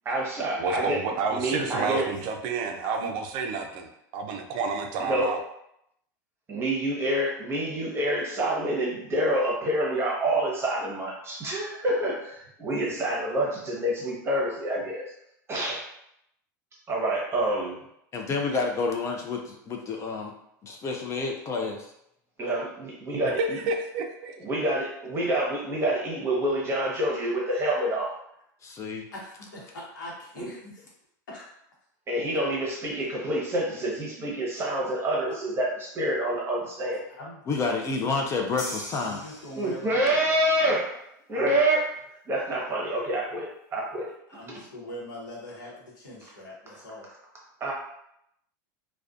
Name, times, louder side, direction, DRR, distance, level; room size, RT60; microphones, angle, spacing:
voice 1, 0.0-2.1 5.0-5.3 6.5-15.1 15.5-15.9 16.9-17.9 22.4-23.6 24.4-28.1 30.4-30.5 32.1-37.0 39.6-41.0 41.3-42.0 42.3-44.1 44.5-44.6 47.6-47.7, right 1 dB, 25° right, -3 dB, 0.8 m, -27 dB
voice 2, 0.6-5.4 23.7-24.3, right 4 dB, 55° right, 4 dB, 0.4 m, -30 dB
voice 3, 1.6-1.9 2.8-3.1 29.1-30.9 31.3-31.4 35.3-35.4 37.2-37.3 39.0-40.0 41.3-41.6 44.3-47.1, left 1 dB, 85° left, -4 dB, 0.9 m, -41 dB
voice 4, 18.1-20.3 20.6-21.9 28.6-29.0 37.5-39.2, left 4 dB, 30° left, 1 dB, 0.4 m, -29 dB
sound 1, 38.6-40.1, left 1 dB, 55° left, 1.4 m, -40 dB
2.4 x 2.2 x 2.3 m, 0.76 s
hypercardioid pair, 110°, 10 cm